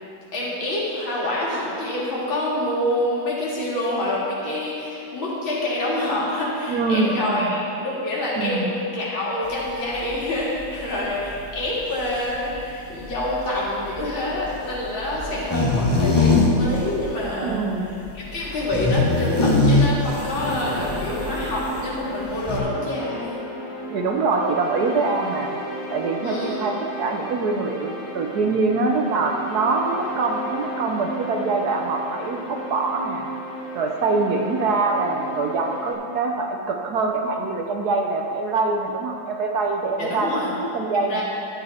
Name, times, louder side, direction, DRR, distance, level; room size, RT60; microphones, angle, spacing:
voice 1, 0.3-17.6 18.1-23.4 26.2-26.6 40.0-40.5 40.9-41.2, left 1 dB, 80° left, -6 dB, 3.0 m, -26 dB
voice 2, 6.7-7.5 8.4-8.7 17.4-17.9 23.9-25.5 25.9-33.3 33.7-41.2, right 3 dB, 65° right, 2 dB, 1.1 m, -24 dB
sound 1, 9.5-21.9 22.2-22.6, left 2 dB, 20° left, 0.8 m, -23 dB
sound 2, 20.3-35.9, right 1 dB, 55° left, 3.6 m, -34 dB
11.5 x 8.6 x 4.2 m, 2.6 s
omnidirectional pair, 2.1 m